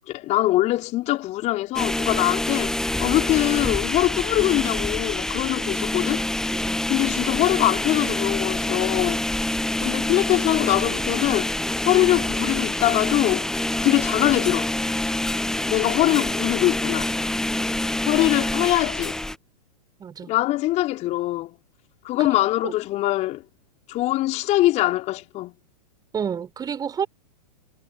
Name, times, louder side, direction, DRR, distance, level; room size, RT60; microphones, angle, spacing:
voice 1, 0.1-6.2 6.9-9.2 9.8-11.5 11.9-13.5 13.8-14.7 15.7-17.1 18.1-19.2 20.3-21.5 22.0-23.4 23.9-25.5, left 16 dB, 35° left, 4.1 m, -23 dB
sound 1, 1.8-19.4, left 1 dB, ahead, 0.7 m, -26 dB
voice 2, 6.2-6.8 17.6-17.7 20.0-20.3 22.6-22.7 26.1-27.1, right 7 dB, 20° right, 4.5 m, -30 dB
hypercardioid pair, 110°, 21 cm